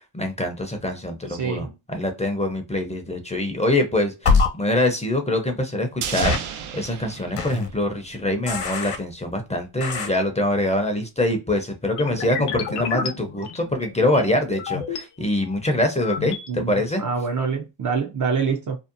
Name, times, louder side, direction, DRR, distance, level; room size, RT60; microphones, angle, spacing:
voice 1, 0.1-17.0, left 1 dB, 15° left, 0.6 m, -24 dB
voice 2, 1.3-1.7 16.5-18.8, right 5 dB, 40° right, 0.5 m, -26 dB
sound 1, 4.3-4.5 6.2-6.4 7.4-7.7 8.5-9.0 9.8-10.1, left 4 dB, 55° left, 1.0 m, -21 dB
sound 2, 6.0-8.4 8.7-8.8, right 8 dB, 80° right, 0.6 m, -33 dB
sound 3, 12.0-15.0 15.5-16.5, left 7 dB, 80° left, 0.7 m, -32 dB
2.7 x 2.0 x 2.5 m
cardioid pair, 80°, 50 cm